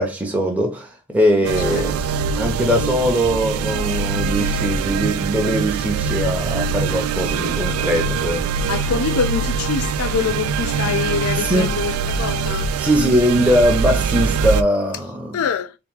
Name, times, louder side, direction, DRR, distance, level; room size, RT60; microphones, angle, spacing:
voice 1, 0.0-2.0 2.4-8.5 11.4-11.7 12.8-15.4, equal, 5° right, 0.7 m, -21 dB
voice 2, 1.4-1.8 8.7-13.1 15.3-15.8, left 6 dB, 80° left, 0.4 m, -25 dB
sound 1, 1.4-14.6, right 5 dB, 80° right, 0.3 m, -23 dB
3.4 x 3.0 x 3.6 m
head